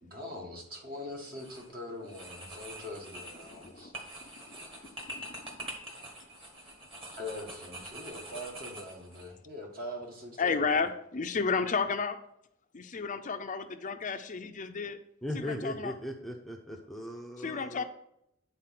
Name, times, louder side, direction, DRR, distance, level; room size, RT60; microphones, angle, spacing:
voice 1, 0.0-3.9 7.2-10.8, left 1 dB, 45° right, 0 dB, 1.7 m, -42 dB
sound 1, 1.3-1.7 2.1-9.3, right 1 dB, 25° right, 1.7 m, -45 dB
voice 2, 3.5-3.9 4.6-4.7 5.6-5.7 10.4-12.2 12.7-15.0 15.3-15.9 17.4-17.8, left 5 dB, 40° left, 8 dB, 0.5 m, -32 dB
voice 3, 15.2-17.8, equal, ahead, 2 dB, 0.7 m, -38 dB
8.8 x 4.2 x 5.9 m, 0.75 s
head